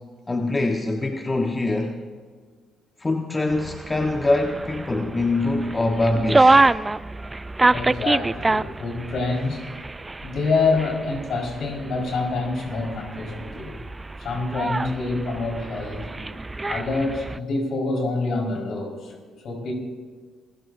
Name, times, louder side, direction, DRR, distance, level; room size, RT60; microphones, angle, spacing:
voice 1, 0.3-1.9 3.0-6.6, left 2 dB, 25° left, 3 dB, 1.3 m, -23 dB
sound 1, 3.5-17.4, right 2 dB, 25° right, 0.4 m, -26 dB
voice 2, 7.7-9.6 10.2-13.8 14.2-16.1 16.7-19.1 19.4-19.7, left 3 dB, 65° left, 0 dB, 5.0 m, -26 dB
28.5 x 16.0 x 2.7 m, 1.6 s
hypercardioid pair, 50°, 0 cm